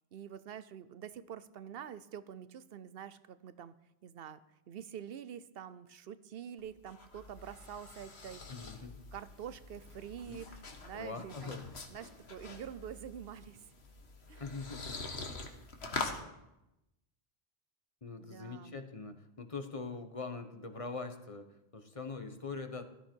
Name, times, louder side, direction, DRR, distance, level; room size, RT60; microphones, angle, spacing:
voice 1, 0.1-3.8 4.0-4.4 4.7-8.4 9.1-11.6 11.9-13.6 14.3-14.4 18.2-18.8, right 9 dB, 70° right, 14 dB, 0.9 m, -46 dB
sound 1, 6.6-16.2, left 3 dB, 85° left, 1.7 m, -45 dB
voice 2, 8.5-9.0 10.3-10.4 10.9-11.6 14.4-14.9 18.0-22.8, left 4 dB, 35° left, 8 dB, 1.1 m, -42 dB
16.0 x 13.0 x 4.5 m, 0.92 s
omnidirectional pair, 1.1 m